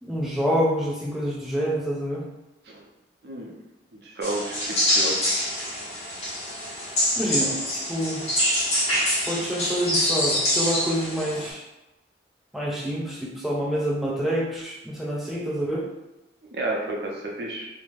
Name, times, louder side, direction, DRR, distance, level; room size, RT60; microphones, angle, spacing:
voice 1, 0.0-2.3 7.2-7.6 7.9-8.2 9.3-11.6 12.5-15.9, equal, ahead, -4 dB, 0.4 m, -27 dB
voice 2, 3.2-3.5 3.9-5.2 16.5-17.7, right 2 dB, 60° right, -1 dB, 0.5 m, -31 dB
sound 1, 4.2-11.5, left 1 dB, 35° left, 0.9 m, -25 dB
2.4 x 2.1 x 3.2 m, 0.96 s
head